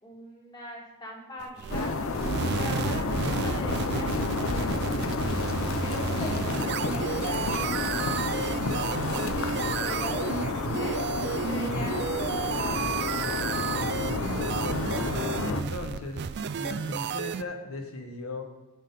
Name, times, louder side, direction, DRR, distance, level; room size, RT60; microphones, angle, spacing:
voice 1, 0.0-2.1 2.6-5.4 5.8-9.2 9.6-10.9 11.4-13.4, equal, 20° left, -2 dB, 1.9 m, -42 dB
sound 1, 1.4-17.4, right 7 dB, 50° right, 0.3 m, -32 dB
sound 2, 1.7-15.6, left 3 dB, 70° left, 0.6 m, -30 dB
voice 2, 15.5-16.2 16.5-18.4, left 2 dB, 85° left, 3 dB, 1.1 m, -37 dB
10.5 x 4.2 x 5.3 m, 1.2 s
head